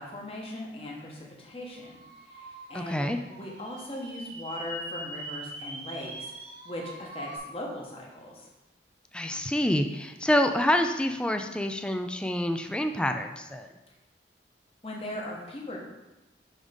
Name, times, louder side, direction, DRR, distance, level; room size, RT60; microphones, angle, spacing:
voice 1, 0.0-2.0 2.3-6.3 6.6-8.5 14.8-15.8, left 1 dB, 35° left, -2 dB, 1.2 m, -39 dB
sound 1, 1.7-7.4, right 1 dB, 90° right, 1.6 m, -42 dB
voice 2, 2.7-3.2 9.1-13.7, left 1 dB, 5° left, 6 dB, 0.3 m, -27 dB
6.3 x 3.6 x 5.2 m, 1.0 s
head